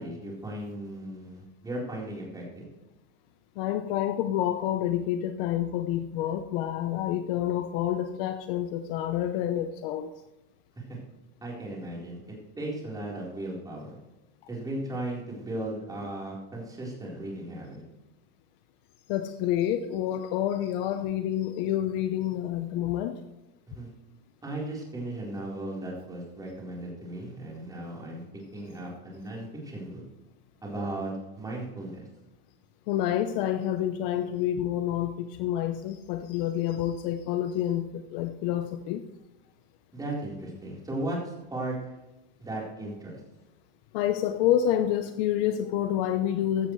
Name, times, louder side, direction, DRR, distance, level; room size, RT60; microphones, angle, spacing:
voice 1, 0.0-2.7 10.8-11.0 11.4-14.0 14.5-17.8 23.7-23.9 24.4-30.0 30.6-31.1 31.4-32.1 39.9-41.9 42.4-43.2, right 1 dB, 10° right, -3 dB, 4.1 m, -36 dB
voice 2, 3.6-10.1 19.1-23.2 32.9-39.1 43.9-46.7, left 11 dB, 55° left, 8 dB, 0.9 m, -28 dB
15.5 x 12.0 x 3.2 m, 1.0 s
supercardioid pair, 155°, 34 cm